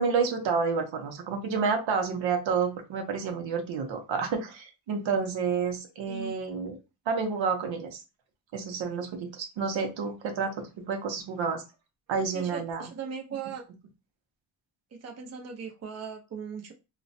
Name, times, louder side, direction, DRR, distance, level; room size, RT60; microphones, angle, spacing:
voice 1, 0.0-6.8 7.1-8.0 8.5-11.6 12.1-12.8, right 5 dB, 85° right, 0.7 m, -29 dB
voice 2, 12.1-13.6 14.9-16.7, right 6 dB, 35° right, 0.6 m, -39 dB
2.9 x 2.1 x 2.6 m
wide cardioid pair, 115°, 45 cm